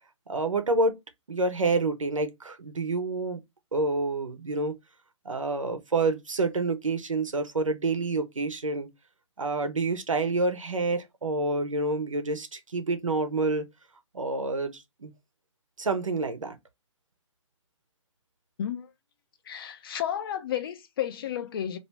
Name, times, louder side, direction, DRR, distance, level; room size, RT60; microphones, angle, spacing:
voice 1, 0.3-1.0 1.3-3.4 3.7-4.8 5.2-8.9 9.4-13.6 14.1-15.1 15.8-16.6, right 3 dB, 85° right, 0.8 m, -28 dB
voice 2, 18.6-18.9 19.5-21.8, left 10 dB, 45° left, 0.6 m, -32 dB
2.9 x 2.6 x 3.3 m
figure-of-eight pair, 135°, 16 cm